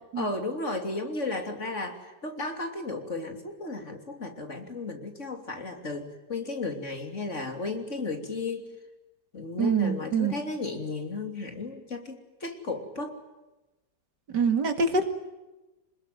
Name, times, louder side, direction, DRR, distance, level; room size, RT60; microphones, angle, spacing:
voice 1, 0.2-8.7 9.3-13.2, left 3 dB, 45° left, 5 dB, 3.4 m, -34 dB
voice 2, 9.6-10.4 14.3-15.1, right 5 dB, 75° right, 8 dB, 2.8 m, -25 dB
27.0 x 20.5 x 9.2 m, 1.0 s
omnidirectional pair, 1.8 m